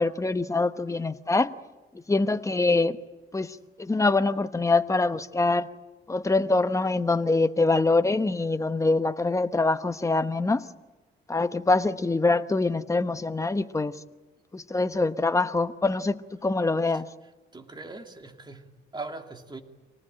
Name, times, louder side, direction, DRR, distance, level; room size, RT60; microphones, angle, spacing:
voice 1, 0.0-1.5 2.1-3.0 3.3-5.7 6.1-10.6 11.3-13.9 14.5-17.1, left 3 dB, 15° left, 10 dB, 1.0 m, -24 dB
voice 2, 17.5-19.6, right 3 dB, 20° right, 4 dB, 2.8 m, -40 dB
25.5 x 19.5 x 9.0 m, 1.2 s
cardioid pair, 90°, 20 cm